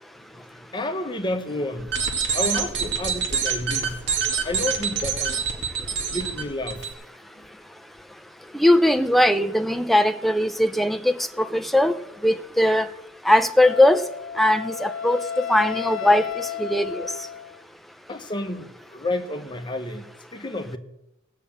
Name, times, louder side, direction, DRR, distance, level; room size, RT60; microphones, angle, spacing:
voice 1, 0.2-1.9 2.3-4.1 4.4-5.5 6.1-6.9 7.3-7.5 18.1-20.8, left 1 dB, 25° left, 7 dB, 1.0 m, -31 dB
sound 1, 1.8-6.9, right 6 dB, 60° right, 2.2 m, -26 dB
voice 2, 8.5-11.9 12.2-12.9 13.2-14.0 14.4-17.1, left 1 dB, ahead, 7 dB, 0.5 m, -20 dB
Wind instrument woodwind instrument, 13.6-17.6, left 8 dB, 70° left, 0.6 m, -32 dB
16.0 x 6.5 x 8.6 m, 0.90 s
head